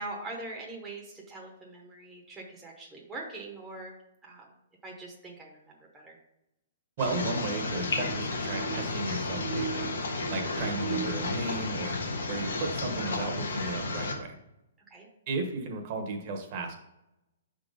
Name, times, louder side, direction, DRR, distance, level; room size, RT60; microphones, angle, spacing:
voice 1, 0.0-3.9 4.2-4.6 4.8-6.2 14.9-15.1, right 2 dB, 10° right, -3 dB, 0.8 m, -42 dB
sound 1, 7.0-14.1, left 2 dB, 85° left, 1.2 m, -32 dB
voice 2, 7.0-9.9 10.3-12.0 12.3-14.4 15.3-16.7, right 2 dB, 35° right, 3 dB, 1.0 m, -34 dB
5.8 x 3.8 x 5.2 m, 0.87 s
hypercardioid pair, 165°, 0 cm